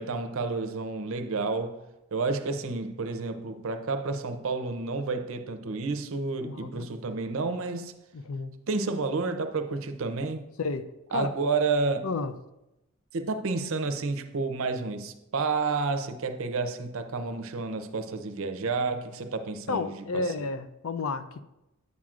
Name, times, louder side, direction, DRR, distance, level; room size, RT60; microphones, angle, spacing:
voice 1, 0.0-1.8 2.1-7.9 8.7-10.5 11.1-12.1 13.1-20.3, right 3 dB, 65° right, 0.6 m, -30 dB
voice 2, 6.4-6.9 8.1-8.5 10.6-11.3 12.0-12.3 19.7-21.4, left 4 dB, 65° left, 0.4 m, -32 dB
9.3 x 7.4 x 2.4 m
head